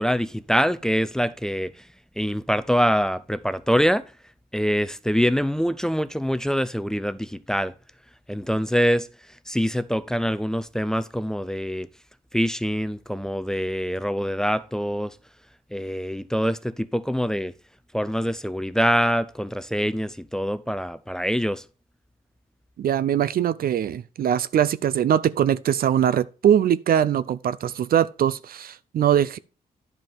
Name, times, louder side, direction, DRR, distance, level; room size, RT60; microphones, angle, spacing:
voice 1, 0.0-1.7 2.2-4.0 4.5-7.7 8.3-9.1 9.5-11.9 12.3-15.1 15.7-17.5 17.9-21.6, equal, 5° left, 0.5 m, -24 dB
voice 2, 22.8-29.4, right 9 dB, 70° right, 0.5 m, -22 dB
11.0 x 5.4 x 4.4 m
wide cardioid pair, 120°, 16 cm